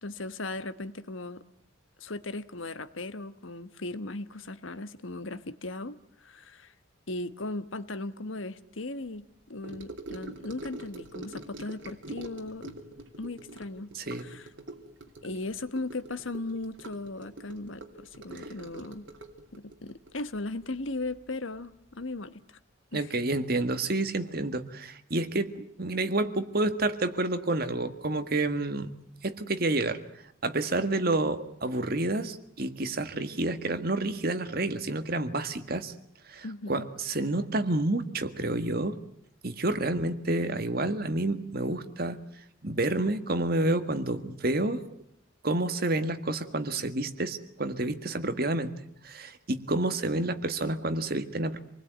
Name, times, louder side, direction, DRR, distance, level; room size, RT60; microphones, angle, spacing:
voice 1, 0.0-1.4 2.0-6.7 7.1-12.7 13.2-14.5 15.2-19.1 19.5-22.6 22.9-23.1 36.4-36.9, left 2 dB, 75° left, 12 dB, 1.3 m, -37 dB
Gurgling / Sink (filling or washing) / Trickle dribble, 9.6-21.3 21.5-21.9 22.1-22.2, right 1 dB, 65° right, 3.0 m, -44 dB
voice 2, 13.9-14.3 18.3-18.5 22.9-28.9 29.2-30.0 30.4-35.9 36.2-39.0 39.4-42.2 42.6-44.8 45.4-48.7 49.0-51.6, right 2 dB, 50° right, 9 dB, 1.8 m, -29 dB
27.5 x 20.0 x 9.4 m, 0.73 s
head